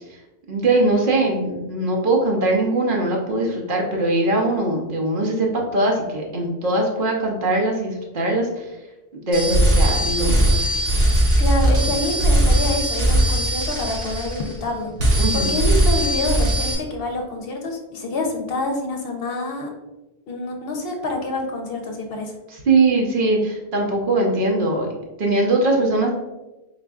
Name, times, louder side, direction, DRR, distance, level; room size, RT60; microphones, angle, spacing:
voice 1, 0.5-8.7 9.2-10.5 15.2-15.5 22.5-24.9 25.2-26.1, right 2 dB, 55° right, 0 dB, 0.8 m, -21 dB
sound 1, 9.3-14.7 15.0-16.8, right 1 dB, 90° right, 1.5 m, -19 dB
voice 2, 11.4-19.7 20.3-22.3, left 2 dB, 65° left, 2 dB, 0.8 m, -27 dB
4.1 x 3.7 x 2.3 m, 1.1 s
omnidirectional pair, 1.1 m